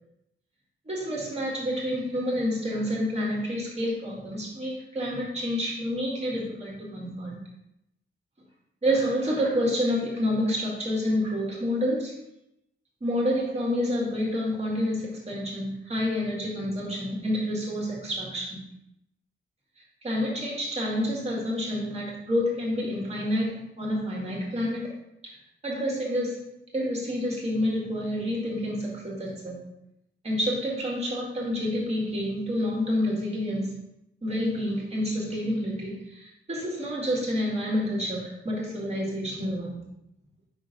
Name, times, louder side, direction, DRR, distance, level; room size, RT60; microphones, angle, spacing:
voice 1, 0.9-7.4 8.8-12.1 13.0-18.6 20.0-24.9 25.2-25.4 25.6-26.4 26.7-29.6 30.2-33.8 34.2-39.8, equal, 30° right, -4 dB, 1.9 m, -28 dB
5.5 x 3.6 x 5.3 m, 0.84 s
wide cardioid pair, 150°, 21 cm